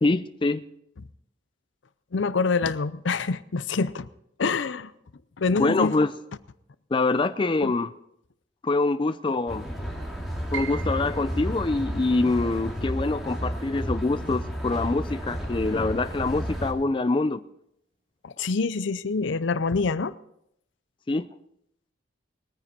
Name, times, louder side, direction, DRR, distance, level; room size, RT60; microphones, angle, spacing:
voice 1, 0.0-0.6 5.6-6.1 6.9-7.9 8.6-9.7 10.5-17.4 21.1-21.3, left 3 dB, 25° left, 0.4 m, -25 dB
voice 2, 2.1-4.1 4.4-4.9 5.4-6.0 7.6-7.7 18.2-20.1, left 4 dB, 80° left, 0.6 m, -26 dB
sound 1, 9.5-16.7, equal, ahead, 2.3 m, -32 dB
Piano, 10.5-16.5 16.8-17.9 18.4-18.5 19.2-19.5, right 10 dB, 75° right, 2.4 m, -45 dB
21.0 x 9.5 x 4.3 m
head